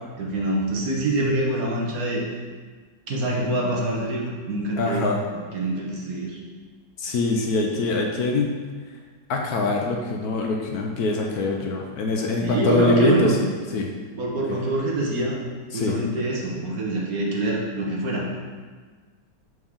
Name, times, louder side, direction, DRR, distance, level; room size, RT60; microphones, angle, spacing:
voice 1, 0.2-2.2 3.1-5.1 5.5-6.4 12.4-13.4 14.1-15.4 15.7-18.4, right 2 dB, 60° right, -2 dB, 1.3 m, -25 dB
voice 2, 4.8-5.2 7.0-8.5 9.3-13.4 13.7-13.9 14.5-14.6 15.7-16.0, left 3 dB, 70° left, 1 dB, 1.1 m, -23 dB
6.3 x 4.7 x 3.6 m, 1.5 s
omnidirectional pair, 1.9 m